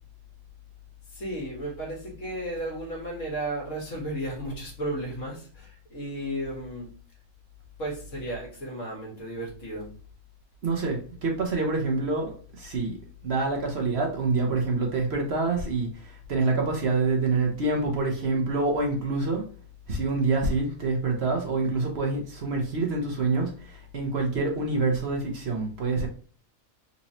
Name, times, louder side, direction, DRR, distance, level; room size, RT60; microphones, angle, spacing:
voice 1, 1.1-6.9 7.8-9.9, right 1 dB, 60° left, 1.9 m, -34 dB
voice 2, 10.6-13.0 13.2-19.4 19.9-26.1, right 3 dB, 55° right, 1.0 m, -26 dB
4.1 x 3.0 x 2.7 m
omnidirectional pair, 1.4 m